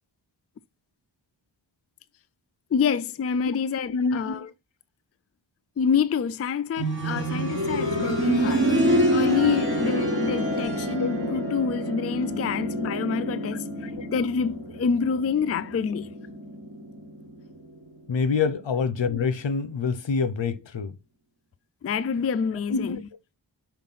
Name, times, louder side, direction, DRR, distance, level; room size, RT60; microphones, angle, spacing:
voice 1, 2.7-4.5 5.8-8.7 9.1-13.7 14.1-16.1 18.4-18.5 21.8-23.0, left 6 dB, 35° left, 0.4 m, -27 dB
voice 2, 3.9-4.4 11.0-11.1 13.8-14.1 18.1-20.9 22.7-23.0, left 5 dB, 70° left, 0.9 m, -26 dB
sound 1, 6.8-17.5 17.8-17.9 18.8-18.9, equal, 25° right, 3.4 m, -27 dB
5.9 x 4.6 x 5.6 m
wide cardioid pair, 85°, 46 cm